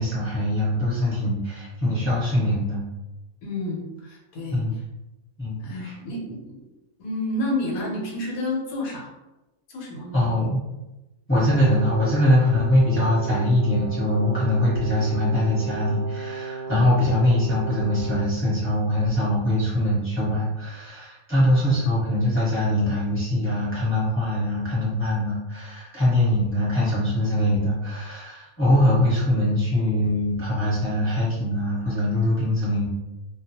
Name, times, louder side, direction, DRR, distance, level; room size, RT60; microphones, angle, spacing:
voice 1, 0.0-2.8 4.5-4.7 5.4-5.9 10.1-10.6 11.3-32.9, left 1 dB, 10° left, -9 dB, 1.0 m, -22 dB
voice 2, 3.4-4.8 5.6-6.7 7.0-9.1 9.7-10.2, left 1 dB, 75° left, -2 dB, 1.2 m, -30 dB
Brass instrument, 11.5-18.4, right 4 dB, 90° right, 1.1 m, -35 dB
2.4 x 2.3 x 2.8 m, 1.0 s
omnidirectional pair, 1.5 m